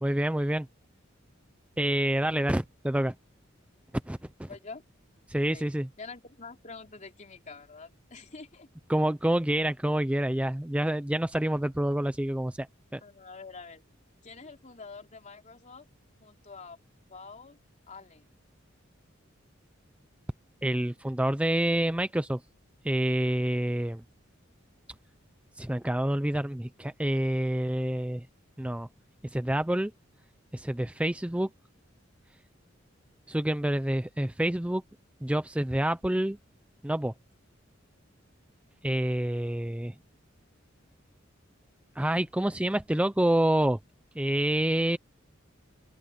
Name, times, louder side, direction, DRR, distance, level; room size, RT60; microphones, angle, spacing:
voice 1, 0.0-0.7 1.8-3.1 4.1-4.5 5.3-5.9 8.9-12.7 12.9-13.0 20.6-22.4 22.8-24.0 25.6-28.3 28.6-28.9 29.3-29.9 30.5-31.5 33.3-34.8 35.2-36.4 36.8-37.1 38.8-39.9 42.0-43.8 44.2-45.0, right 1 dB, 5° right, 0.5 m, -27 dB
voice 2, 4.5-4.8 5.5-5.7 6.0-8.7 13.0-13.8 14.2-15.9 16.2-16.8 17.1-17.6 17.9-18.3, left 4 dB, 40° left, 3.2 m, -46 dB
open air
head